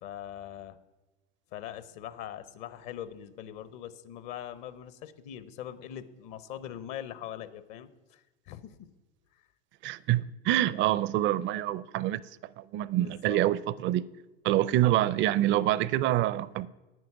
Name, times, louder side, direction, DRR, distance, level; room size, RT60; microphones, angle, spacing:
voice 1, 0.0-0.8 1.5-8.9 9.3-9.5 13.0-13.4, left 11 dB, 55° left, 0.8 m, -42 dB
voice 2, 9.8-14.1 14.4-16.7, right 14 dB, 40° right, 0.5 m, -26 dB
9.4 x 9.3 x 5.8 m
hypercardioid pair, 90°, 30 cm